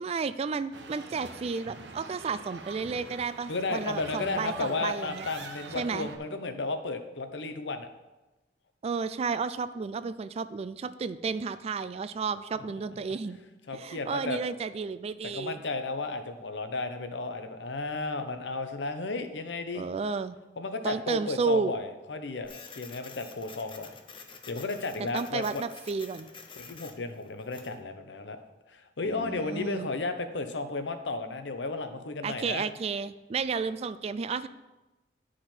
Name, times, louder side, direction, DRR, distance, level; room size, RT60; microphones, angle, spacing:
voice 1, 0.0-5.3 5.7-6.1 8.8-13.4 13.7-15.6 19.7-20.4 20.8-21.7 25.1-26.3 29.0-29.9 32.2-34.5, right 5 dB, 35° right, 13 dB, 0.3 m, -32 dB
sound 1, 0.7-6.2, right 3 dB, 90° right, 0.8 m, -45 dB
voice 2, 3.5-7.9 13.7-14.4 15.2-19.9 20.6-24.0 24.5-25.6 26.6-28.4 28.7-32.7, left 3 dB, 85° left, 8 dB, 0.8 m, -33 dB
Printer, 22.4-27.8, left 5 dB, 30° left, 0.7 m, -49 dB
10.0 x 4.9 x 4.4 m, 1.1 s
head